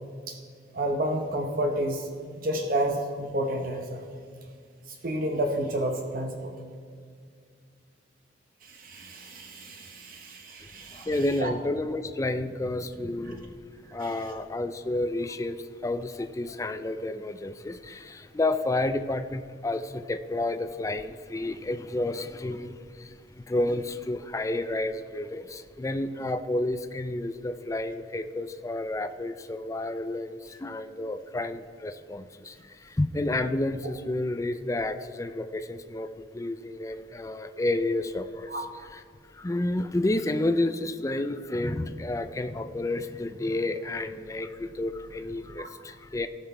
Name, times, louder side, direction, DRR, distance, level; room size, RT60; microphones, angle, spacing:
voice 1, 0.7-2.1 2.4-4.0 5.0-6.5 8.6-11.1 11.4-11.5 38.5-38.6 45.6-45.7, right 1 dB, 50° right, 3 dB, 0.8 m, -30 dB
voice 2, 11.0-13.6 13.9-39.0 39.3-46.3, left 2 dB, 15° left, 10 dB, 0.3 m, -30 dB
16.5 x 6.0 x 4.4 m, 2.1 s
head